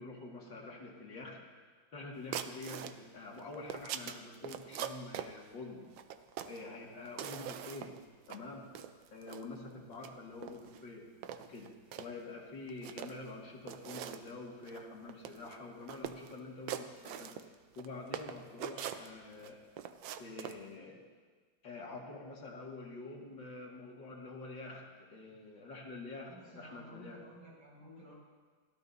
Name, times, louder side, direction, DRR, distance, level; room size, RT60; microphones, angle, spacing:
voice 1, 0.0-1.4 1.9-5.9 6.5-8.0 8.3-8.7 9.1-11.1 11.4-11.7 12.0-17.4 17.8-19.6 20.2-21.0 21.6-27.2, left 3 dB, 65° left, -2 dB, 2.8 m, -47 dB
sound 1, 2.3-2.9 3.4-5.3 6.0-6.6 7.1-8.0 8.3-8.4 8.7-9.4 9.9-10.1 10.4-10.8 11.2-12.1 12.7-13.3 13.7-14.3 14.6-14.8 15.1-15.6 15.9-16.3 16.7-17.9 18.1-19.5 19.8-20.6, right 9 dB, 75° right, 1.3 m, -42 dB
voice 2, 26.3-28.1, equal, 90° right, -6 dB, 6.9 m, -54 dB
29.5 x 13.0 x 2.8 m, 1.5 s
omnidirectional pair, 2.2 m